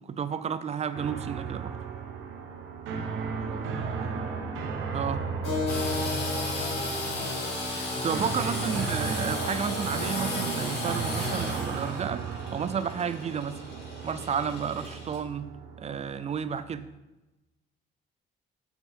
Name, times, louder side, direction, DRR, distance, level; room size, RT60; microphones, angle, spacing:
voice 1, 0.0-1.8 4.9-5.2 7.9-12.2 12.5-13.6 14.0-15.5 15.8-16.9, right 7 dB, 35° right, 14 dB, 0.4 m, -31 dB
sound 1, 0.9-16.9, right 5 dB, 85° right, 0.9 m, -35 dB
voice 2, 3.4-4.4 4.9-5.9 6.5-7.3 8.3-9.0, right 2 dB, 55° right, -3 dB, 1.9 m, -47 dB
Keyboard (musical), 5.4-10.5, left 4 dB, 90° left, 2.2 m, -38 dB
Engine / Sawing, 5.7-15.2, left 2 dB, 60° left, 2.2 m, -34 dB
6.4 x 5.1 x 3.6 m, 1.0 s
cardioid pair, 90°, 20 cm